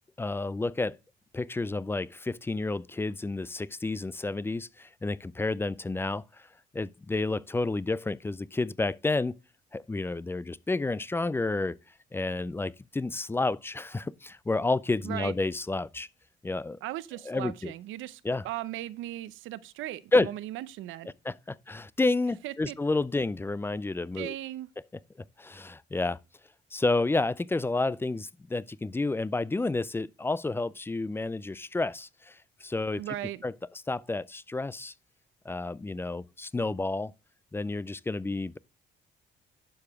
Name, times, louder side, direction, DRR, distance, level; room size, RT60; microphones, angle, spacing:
voice 1, 0.2-1.0 1.3-6.5 6.7-9.4 9.7-11.8 12.1-16.1 16.4-16.8 17.3-17.7 18.2-18.4 20.1-20.3 21.2-24.3 25.4-26.2 26.7-33.0 33.4-33.5 33.9-34.9 35.5-37.1 37.5-38.6, left 2 dB, 10° left, 0.3 m, -30 dB
voice 2, 16.8-21.1 22.4-22.8 24.1-24.7 33.0-33.4, right 14 dB, 80° right, 0.6 m, -37 dB
11.5 x 4.8 x 3.5 m
cardioid pair, 90°, 20 cm